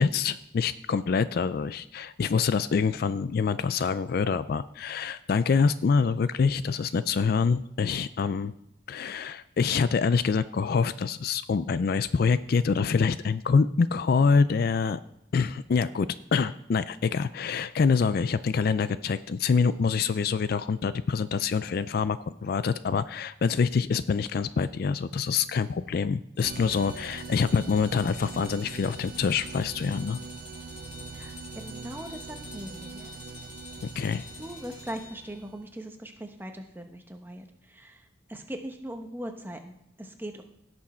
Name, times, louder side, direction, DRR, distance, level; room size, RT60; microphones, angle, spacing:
voice 1, 0.0-8.5 8.9-15.0 15.3-30.2 34.0-34.2, left 5 dB, 50° left, 14 dB, 0.3 m, -26 dB
sound 1, 26.4-35.4, left 4 dB, 35° left, 2.6 m, -48 dB
sound 2, 26.4-35.8, right 5 dB, 45° right, 0.3 m, -43 dB
voice 2, 31.1-33.1 34.4-38.0 38.3-40.4, right 1 dB, 10° right, 4 dB, 1.0 m, -40 dB
17.0 x 6.2 x 4.3 m, 0.84 s
head